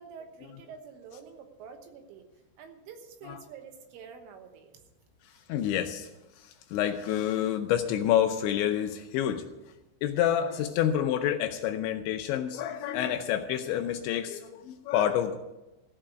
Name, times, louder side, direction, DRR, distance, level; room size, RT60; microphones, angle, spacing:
voice 1, 0.0-2.3 2.6-4.8, right 6 dB, 80° right, 5 dB, 3.7 m, -47 dB
voice 2, 5.2-6.1 6.4-9.5 10.0-15.4, left 10 dB, 80° left, 5 dB, 2.7 m, -28 dB
15.0 x 5.8 x 8.9 m, 1.0 s
omnidirectional pair, 5.7 m